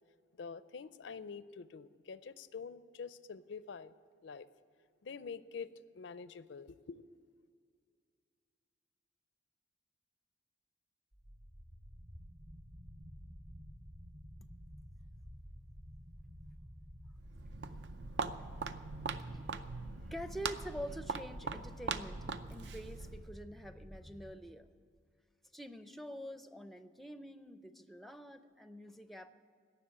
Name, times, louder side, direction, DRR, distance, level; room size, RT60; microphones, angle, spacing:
voice 1, 0.3-3.9 4.2-4.5 5.0-7.1, left 5 dB, 80° left, 15 dB, 0.5 m, -46 dB
sound 1, 11.1-24.3, equal, 40° right, 1.2 m, -52 dB
Walk footsteps, 17.2-23.3, right 4 dB, 65° right, 0.6 m, -41 dB
voice 2, 18.6-19.0 19.2-19.6 20.1-24.7 25.5-29.3, equal, ahead, 10 dB, 0.5 m, -47 dB
17.0 x 7.0 x 9.9 m, 2.2 s
head